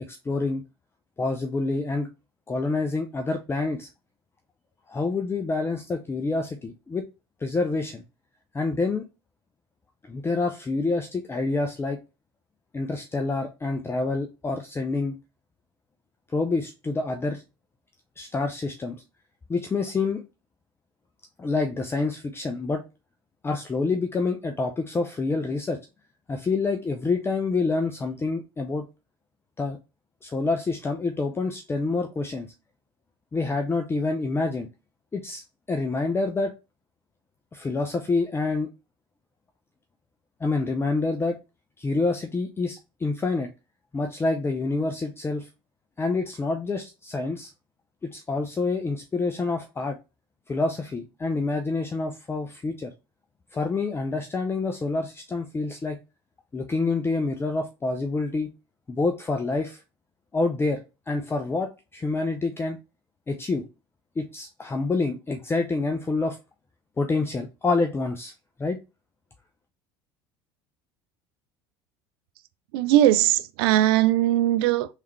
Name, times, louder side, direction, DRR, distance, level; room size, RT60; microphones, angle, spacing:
voice 1, 0.1-0.6 1.2-2.1 2.5-3.9 4.9-7.1 7.4-8.0 8.5-9.1 10.1-12.0 12.7-15.2 16.3-17.4 18.2-19.0 19.5-20.2 21.4-22.8 23.4-25.8 26.3-28.8 29.6-29.8 30.2-32.5 33.3-34.7 35.1-35.4 35.7-36.5 37.5-38.7 40.4-41.4 41.8-43.5 43.9-45.5 46.0-47.5 48.1-50.0 50.5-52.9 53.5-56.0 56.5-58.5 58.9-59.8 60.3-62.8 63.3-63.7 64.2-66.4 67.0-68.3 68.6-68.8, left 3 dB, 20° left, 0.5 m, -27 dB
voice 2, 72.7-74.9, right 13 dB, 70° right, 0.4 m, -20 dB
3.5 x 3.2 x 3.1 m
hypercardioid pair, 75°, 13 cm